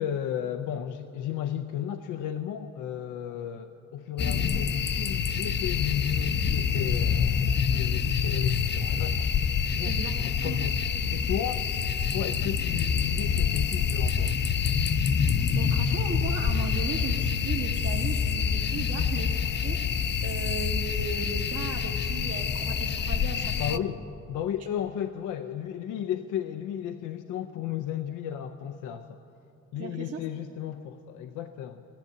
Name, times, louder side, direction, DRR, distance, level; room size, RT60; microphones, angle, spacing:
voice 1, 0.0-9.3 9.7-10.8 11.1-11.7 12.1-14.4 23.6-24.0 24.3-29.2 29.7-31.9, left 10 dB, 90° left, 8 dB, 0.6 m, -34 dB
sound 1, 4.2-23.8, left 7 dB, 35° left, 0.5 m, -27 dB
voice 2, 9.8-10.2 10.4-10.6 15.4-19.8 20.2-23.8 29.8-30.2, right 5 dB, 55° right, 0 dB, 1.3 m, -37 dB
14.5 x 10.5 x 9.2 m, 2.8 s
cardioid pair, 90°, 30 cm